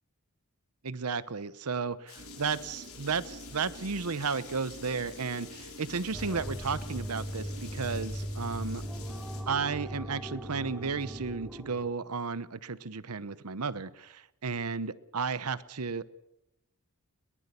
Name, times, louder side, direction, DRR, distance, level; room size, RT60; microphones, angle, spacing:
voice 1, 0.8-8.8 9.5-16.0, right 5 dB, 85° right, 16 dB, 0.9 m, -33 dB
Rain, 2.1-9.4, left 8 dB, 70° left, 5.1 m, -50 dB
sound 1, 2.2-11.7, right 1 dB, 55° right, 2.8 m, -48 dB
sound 2, 6.1-11.9, equal, 5° right, 0.7 m, -39 dB
22.0 x 19.5 x 6.8 m, 0.86 s
head